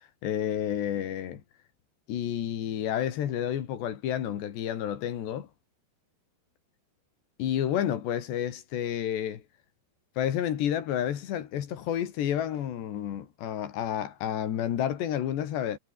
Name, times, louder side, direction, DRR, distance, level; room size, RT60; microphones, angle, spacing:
voice 1, 0.2-1.4 2.1-5.5 7.4-9.4 10.2-15.8, left 10 dB, 70° left, 4.4 m, -30 dB
omnidirectional pair, 5.2 m